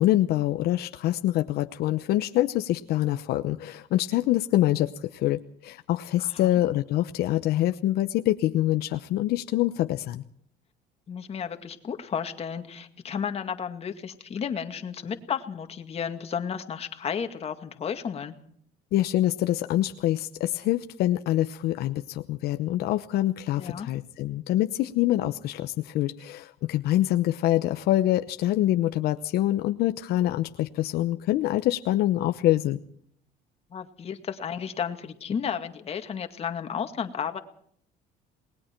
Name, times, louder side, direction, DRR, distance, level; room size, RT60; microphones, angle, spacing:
voice 1, 0.0-10.2 18.9-32.8, left 14 dB, 70° left, 9 dB, 0.9 m, -25 dB
voice 2, 11.1-18.3 23.6-23.9 33.7-37.4, left 7 dB, 35° left, 6 dB, 2.1 m, -33 dB
28.5 x 20.0 x 4.5 m, 0.64 s
cardioid pair, 125°, 17 cm